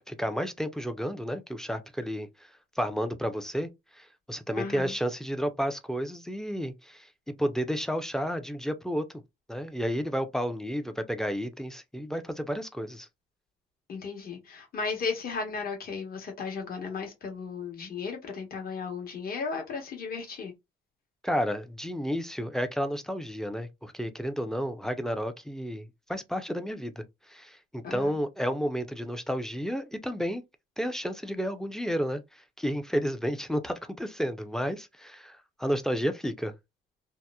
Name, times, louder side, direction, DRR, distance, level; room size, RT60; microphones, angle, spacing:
voice 1, 0.1-2.3 2.8-9.1 9.5-13.1 21.2-30.4 30.8-32.2 32.6-36.5, equal, ahead, 0.4 m, -31 dB
voice 2, 4.6-4.9 13.9-20.5 27.8-28.2, left 5 dB, 50° left, 1.0 m, -35 dB
2.8 x 2.0 x 2.2 m
cardioid pair, 90°, 20 cm